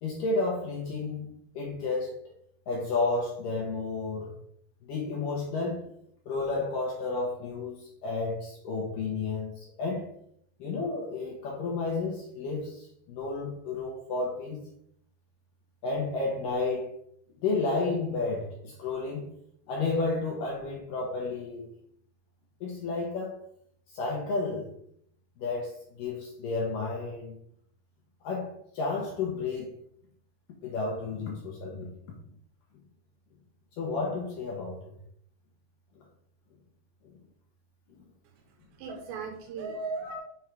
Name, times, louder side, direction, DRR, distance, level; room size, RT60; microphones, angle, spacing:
voice 1, 0.0-2.2 2.7-4.3 4.8-5.9 6.3-10.1 10.6-14.6 15.8-17.0 17.4-19.3 19.7-21.7 22.6-23.4 23.9-24.7 25.4-27.4 28.2-29.7 30.6-32.1 33.8-35.0 40.0-40.1, left 3 dB, 75° left, -1 dB, 2.1 m, -32 dB
voice 2, 38.2-40.2, right 4 dB, 85° right, 3 dB, 3.0 m, -38 dB
7.1 x 3.7 x 4.6 m, 0.69 s
omnidirectional pair, 5.1 m